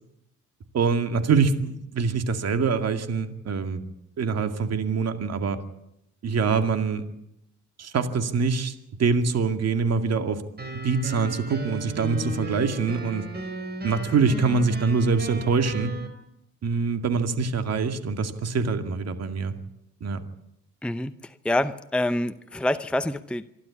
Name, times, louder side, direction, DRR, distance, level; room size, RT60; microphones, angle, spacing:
voice 1, 0.7-3.8 4.2-5.6 6.2-7.0 7.8-8.7 9.0-10.4 10.8-13.3 13.8-15.9 16.6-19.5 20.0-20.2, right 5 dB, 55° right, 8 dB, 2.2 m, -24 dB
sound 1, 10.6-16.1, right 2 dB, 35° right, 4.6 m, -35 dB
voice 2, 20.8-23.5, left 1 dB, 5° left, 11 dB, 0.8 m, -27 dB
26.5 x 12.0 x 9.8 m, 0.82 s
cardioid pair, 90°, 30 cm